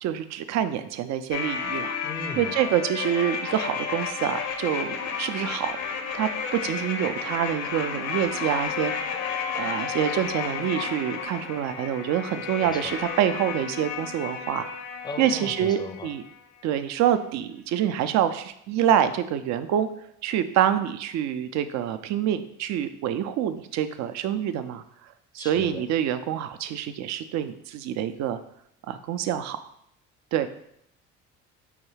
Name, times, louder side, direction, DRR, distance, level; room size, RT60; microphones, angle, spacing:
voice 1, 0.0-2.0 2.4-5.7 6.1-9.2 9.6-14.7 15.2-16.2 16.6-19.9 20.2-24.8 25.3-28.4 28.9-29.6 30.3-30.5, right 10 dB, 60° right, 11 dB, 0.4 m, -26 dB
sound 1, 1.3-16.3 16.6-16.7, left 6 dB, 80° left, 0.6 m, -32 dB
voice 2, 2.0-2.6 12.6-12.9 15.0-16.1 25.4-25.8, left 3 dB, 15° left, 8 dB, 0.4 m, -37 dB
5.0 x 2.3 x 3.2 m, 0.73 s
supercardioid pair, 70°, 32 cm